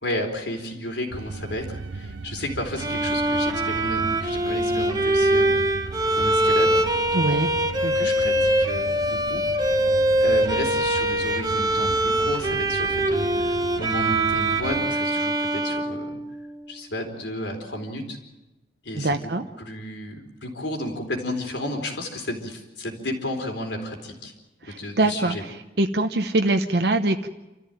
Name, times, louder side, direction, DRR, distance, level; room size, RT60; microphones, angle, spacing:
voice 1, 0.0-5.8 6.1-6.8 7.9-9.8 10.2-16.2 16.7-18.2 18.8-19.3 19.6-24.3 24.6-25.4, left 1 dB, 80° left, 4 dB, 4.2 m, -32 dB
sound 1, 1.1-14.8, right 3 dB, 85° right, 0.7 m, -37 dB
Bowed string instrument, 2.8-16.7, right 1 dB, 20° right, 1.1 m, -23 dB
voice 2, 7.1-7.5 7.8-8.1 18.9-19.4 24.6-25.4 25.8-27.3, right 2 dB, 65° right, 5 dB, 0.9 m, -23 dB
28.0 x 14.0 x 9.1 m, 1.0 s
head